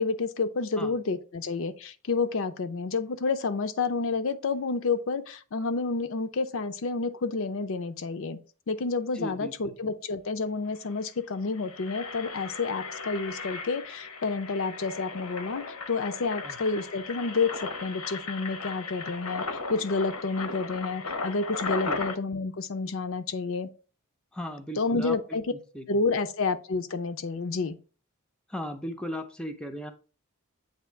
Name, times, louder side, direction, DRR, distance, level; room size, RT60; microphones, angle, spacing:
voice 1, 0.0-8.4 8.7-23.7 24.8-25.5 25.9-27.8, left 4 dB, 60° left, 0.5 m, -29 dB
voice 2, 9.1-9.7 16.4-16.6 21.8-22.0 24.3-25.2 25.5-26.0 28.5-29.9, equal, 5° left, 0.5 m, -37 dB
Engine, 10.8-11.0 11.4-22.2, left 4 dB, 80° left, 0.8 m, -36 dB
8.0 x 2.8 x 4.4 m
head